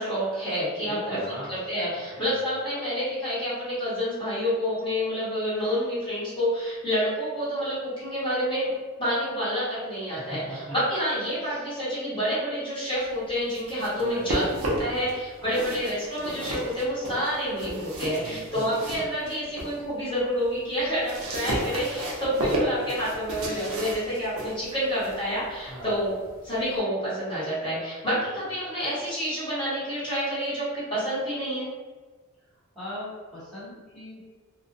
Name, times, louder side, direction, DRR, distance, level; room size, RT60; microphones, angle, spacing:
voice 1, 0.0-1.2 1.5-8.7 9.0-26.1 26.4-31.7, equal, 25° left, -12 dB, 1.1 m, -28 dB
voice 2, 0.8-1.5 2.0-2.2 10.2-10.7 11.4-11.6 14.0-15.1 15.4-15.5 18.1-18.7 22.4-22.5 23.4-23.7 25.7-26.0 28.1-28.2 32.7-34.2, equal, ahead, -15 dB, 1.0 m, -40 dB
sound 1, 13.3-15.1 15.4-19.8 20.2-26.8, right 1 dB, 75° right, 0.6 m, -33 dB
2.4 x 2.1 x 2.6 m, 1.3 s
head